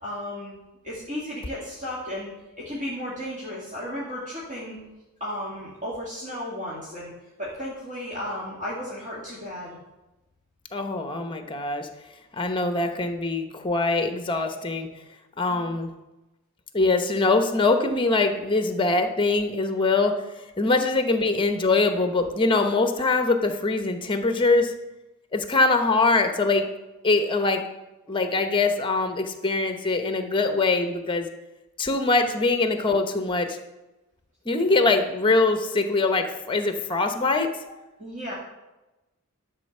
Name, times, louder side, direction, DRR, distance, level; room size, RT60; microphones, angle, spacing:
voice 1, 0.0-0.5 0.8-2.3 2.6-4.8 5.2-7.1 7.4-9.8 15.4-15.7 38.0-38.3, left 1 dB, 35° right, -7 dB, 2.1 m, -34 dB
voice 2, 10.7-11.9 12.4-14.9 15.4-15.9 16.7-20.1 20.6-24.7 25.3-26.6 27.0-27.6 28.1-31.3 31.8-33.6 34.5-37.5, left 3 dB, 20° left, 6 dB, 0.8 m, -23 dB
11.0 x 4.3 x 6.5 m, 1.0 s
head